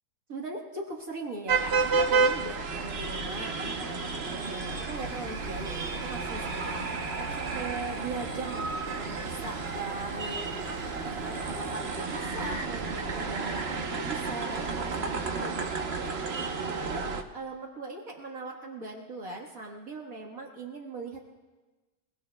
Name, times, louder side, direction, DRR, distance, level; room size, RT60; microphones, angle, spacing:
voice 1, 0.3-10.8 11.2-16.2 16.6-21.2, right 2 dB, 65° right, -1 dB, 2.0 m, -40 dB
sound 1, 1.5-17.2, right 4 dB, 45° right, 1.1 m, -31 dB
sound 2, 4.9-11.7, right 1 dB, 90° right, 3.6 m, -45 dB
28.0 x 19.5 x 2.3 m, 1.2 s
omnidirectional pair, 1.6 m